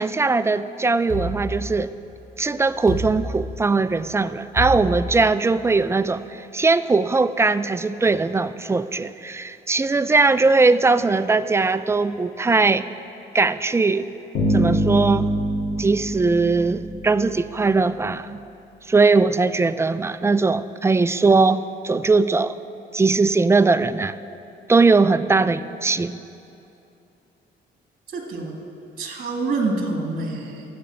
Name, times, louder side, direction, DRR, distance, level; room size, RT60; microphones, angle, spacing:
voice 1, 0.0-1.9 2.4-12.9 13.3-14.1 14.5-15.3 15.8-18.4 18.9-22.6 22.9-24.2 24.7-26.2, right 3 dB, 15° right, 13 dB, 0.3 m, -20 dB
sound 1, 1.1-2.2 2.9-3.9 4.6-5.7, right 1 dB, 5° left, 2.6 m, -30 dB
Bass guitar, 14.3-17.4, right 1 dB, 85° left, 3.0 m, -24 dB
voice 2, 28.1-28.5 29.0-30.6, right 3 dB, 50° right, 1 dB, 1.7 m, -26 dB
14.5 x 5.2 x 7.5 m, 2.8 s
cardioid pair, 90°, 20 cm